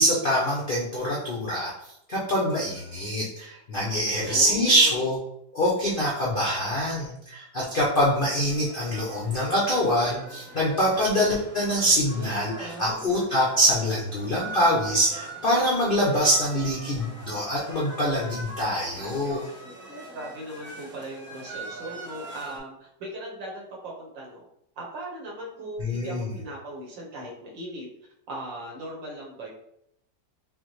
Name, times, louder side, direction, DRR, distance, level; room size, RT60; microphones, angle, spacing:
voice 1, 0.0-5.2 5.5-19.5 25.8-26.3, equal, 80° left, -5 dB, 0.4 m, -24 dB
voice 2, 4.2-5.0 12.1-13.1 20.1-24.4 24.8-27.9 28.3-29.5, right 1 dB, 70° right, -3 dB, 1.7 m, -38 dB
sound 1, 8.5-22.6, right 2 dB, 10° right, 0.6 m, -42 dB
5.5 x 2.1 x 3.1 m, 0.75 s
omnidirectional pair, 2.1 m